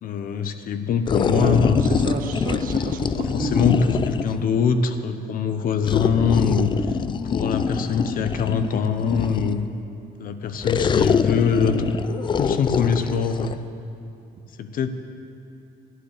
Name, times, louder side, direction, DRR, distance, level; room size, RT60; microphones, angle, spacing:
voice 1, 0.0-1.8 3.1-6.7 7.3-9.6 10.2-11.8 12.4-13.6 14.6-14.9, left 6 dB, 55° left, 9 dB, 0.8 m, -23 dB
sound 1, 1.1-4.4 5.8-9.7 10.6-13.6, left 6 dB, 30° left, 0.4 m, -24 dB
voice 2, 1.3-4.0, right 4 dB, 55° right, 4 dB, 1.3 m, -30 dB
11.0 x 9.5 x 6.6 m, 2.6 s
cardioid pair, 110°, 17 cm